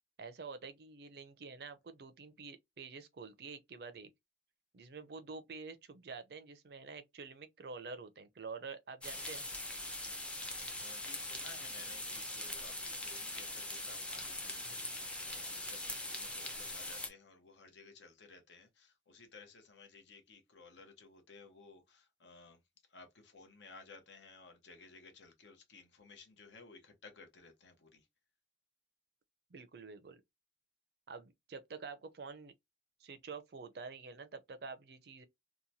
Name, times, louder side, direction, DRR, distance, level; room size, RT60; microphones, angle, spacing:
voice 1, 0.2-4.1 4.7-9.4 29.5-30.2 31.1-32.5 33.0-35.2, right 4 dB, 60° right, 0.4 m, -48 dB
sound 1, 9.0-17.1, left 1 dB, 5° left, 0.4 m, -42 dB
voice 2, 10.8-22.6 22.9-28.1, left 4 dB, 80° left, 0.8 m, -57 dB
2.8 x 2.1 x 2.6 m
head